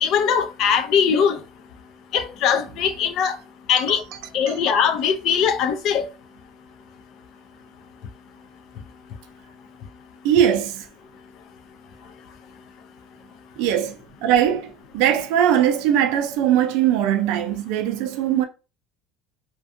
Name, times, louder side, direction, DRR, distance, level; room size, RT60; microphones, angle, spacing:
voice 1, 0.0-1.4 2.1-3.4 3.7-4.0 4.3-6.0, left 7 dB, 55° left, 0.4 m, -20 dB
voice 2, 10.2-10.9 13.6-18.5, right 10 dB, 75° right, 0.4 m, -21 dB
2.5 x 2.2 x 2.5 m
cardioid pair, 150°, 0 cm